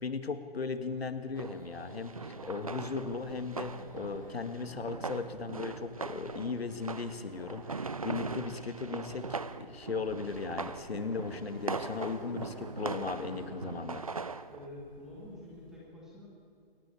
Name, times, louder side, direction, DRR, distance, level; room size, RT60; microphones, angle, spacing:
voice 1, 0.0-14.1, left 4 dB, 80° left, 9 dB, 2.2 m, -37 dB
Insect, 0.6-15.8, right 1 dB, 20° right, 7.6 m, -54 dB
sound 1, 1.4-14.7, right 4 dB, 35° right, 0.6 m, -41 dB
voice 2, 14.5-16.3, left 1 dB, ahead, -5 dB, 1.4 m, -47 dB
22.5 x 18.5 x 8.6 m, 2.5 s
hypercardioid pair, 180°, 30 cm